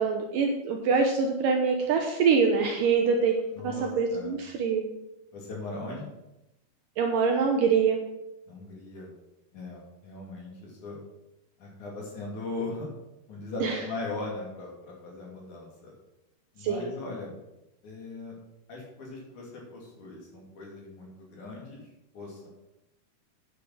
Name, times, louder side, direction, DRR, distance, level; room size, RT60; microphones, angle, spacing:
voice 1, 0.0-3.3 3.6-4.8 7.0-8.0 13.6-13.8 16.6-16.9, right 5 dB, 70° right, 2 dB, 2.2 m, -24 dB
voice 2, 3.6-4.3 5.3-6.1 8.5-9.1 9.5-11.0 11.6-12.9 13.3-15.9 16.5-17.4 17.8-18.4 18.7-22.5, left 3 dB, 50° left, -2 dB, 3.5 m, -39 dB
9.8 x 6.7 x 6.2 m, 0.92 s
omnidirectional pair, 4.7 m